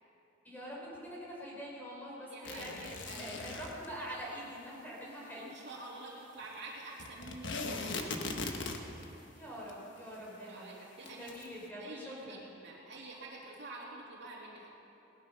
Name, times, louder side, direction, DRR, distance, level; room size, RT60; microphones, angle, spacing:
voice 1, 0.4-5.5 9.3-12.5, equal, 10° left, -5 dB, 4.6 m, -45 dB
voice 2, 2.3-3.7 5.3-8.6 10.5-11.4 11.8-14.7, right 2 dB, 60° right, -4 dB, 2.8 m, -48 dB
sound 1, 2.4-3.9 7.0-9.0 9.7-9.8 10.0-10.1 11.1-11.5, left 3 dB, 65° left, 1.4 m, -39 dB
19.0 x 13.0 x 5.7 m, 2.9 s
head